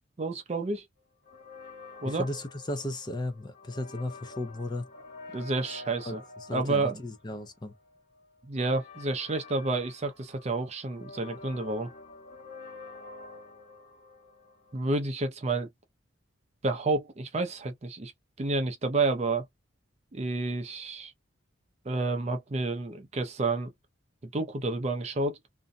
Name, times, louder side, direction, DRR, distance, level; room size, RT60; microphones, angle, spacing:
voice 1, 0.2-0.8 2.0-2.2 5.3-6.2 6.5-7.0 8.4-11.9 14.7-15.7 16.6-18.1 18.4-19.4 20.1-21.1 21.9-23.7 24.3-25.4, right 3 dB, 30° right, 0.5 m, -30 dB
sound 1, 1.2-15.0, left 3 dB, 50° left, 1.3 m, -48 dB
voice 2, 2.0-4.9 6.0-7.7, left 1 dB, 20° left, 0.5 m, -35 dB
2.5 x 2.1 x 2.5 m
head